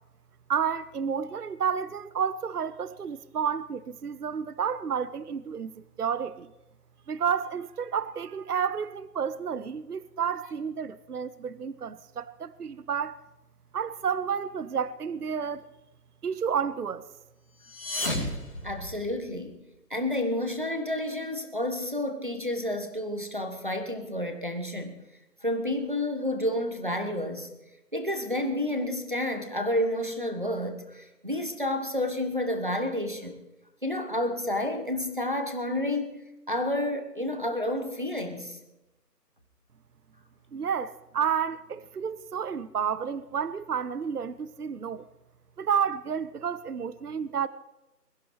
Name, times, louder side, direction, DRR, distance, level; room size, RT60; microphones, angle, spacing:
voice 1, 0.5-6.5 7.1-13.2 13.7-15.7 16.2-17.0 40.5-45.0 45.6-47.5, right 7 dB, 65° right, 0.6 m, -30 dB
sound 1, 17.6-19.5, left 1 dB, 35° left, 3.3 m, -33 dB
voice 2, 18.6-19.6 19.9-24.9 25.4-27.5 27.9-33.4 33.8-36.1 36.5-38.6, left 1 dB, 30° right, 1.2 m, -30 dB
22.0 x 13.0 x 3.3 m
figure-of-eight pair, 180°, 50 cm